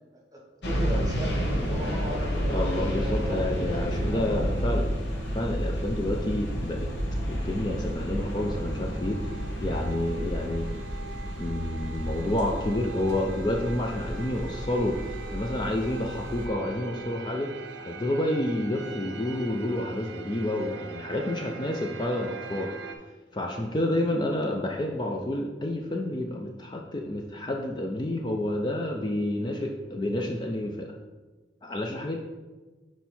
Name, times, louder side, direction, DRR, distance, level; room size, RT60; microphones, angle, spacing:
voice 1, 0.1-3.9 4.1-4.6 24.0-24.2, equal, 20° right, -1 dB, 1.3 m, -38 dB
sound 1, 0.6-16.5, equal, 80° left, 1.1 m, -31 dB
voice 2, 2.5-4.9 5.3-6.9 7.3-10.7 11.4-17.5 17.8-22.7 23.3-30.9 31.6-32.2, left 1 dB, 25° left, 1 dB, 0.4 m, -29 dB
sound 2, 3.0-23.0, right 4 dB, 80° right, 0.6 m, -44 dB
6.0 x 4.5 x 4.2 m, 1.3 s
head